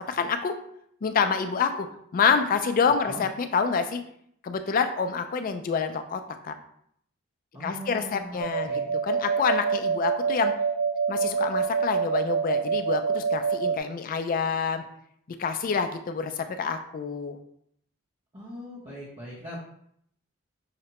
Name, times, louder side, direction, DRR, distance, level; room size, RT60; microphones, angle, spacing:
voice 1, 0.1-0.5 1.0-1.9 2.1-4.0 4.4-6.6 7.6-8.7 9.0-10.5 11.1-14.8 15.4-17.4, left 5 dB, 40° left, 7 dB, 0.3 m, -27 dB
voice 2, 7.5-8.9 18.3-19.6, equal, 30° right, -9 dB, 0.8 m, -40 dB
sound 1, 8.4-13.8, right 5 dB, 60° right, 1.1 m, -26 dB
5.7 x 2.1 x 2.9 m, 0.68 s
head